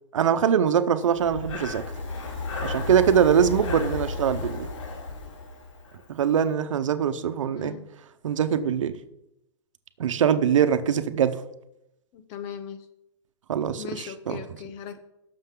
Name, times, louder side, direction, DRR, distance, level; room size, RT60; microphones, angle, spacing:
voice 1, 0.1-1.8 2.6-4.7 6.1-7.7 8.2-9.0 10.0-11.4 13.5-14.4, right 8 dB, 85° right, 11 dB, 0.9 m, -23 dB
Breathing, 1.1-6.1, left 3 dB, 80° left, 2.6 m, -33 dB
voice 2, 7.5-7.8 12.1-12.8 13.8-15.0, left 8 dB, 35° left, 9 dB, 1.1 m, -38 dB
17.0 x 6.7 x 3.8 m, 0.86 s
hypercardioid pair, 155°, 16 cm